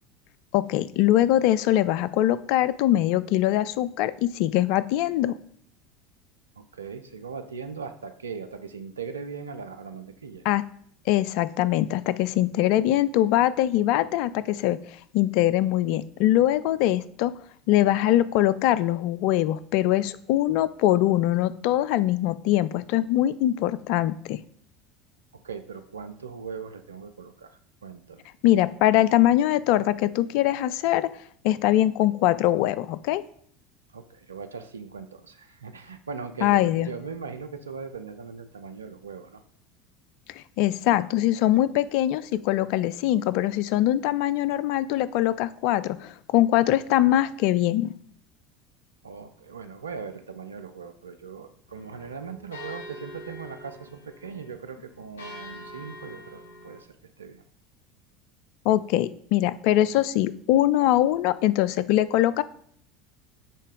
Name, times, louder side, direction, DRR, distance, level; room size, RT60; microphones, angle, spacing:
voice 1, 0.5-5.4 10.5-10.6 11.1-14.8 15.1-17.3 17.7-24.4 28.4-31.1 31.4-33.2 36.4-36.9 40.3-47.9 58.7-62.4, left 14 dB, 60° left, 16 dB, 0.3 m, -22 dB
voice 2, 6.6-10.4 25.3-28.3 33.9-39.4 49.0-56.9 57.2-57.4, right 5 dB, 90° right, 8 dB, 0.6 m, -39 dB
sound 1, 51.7-56.8, left 1 dB, 80° left, 1.8 m, -44 dB
8.4 x 3.2 x 5.2 m, 0.62 s
hypercardioid pair, 75°, 0 cm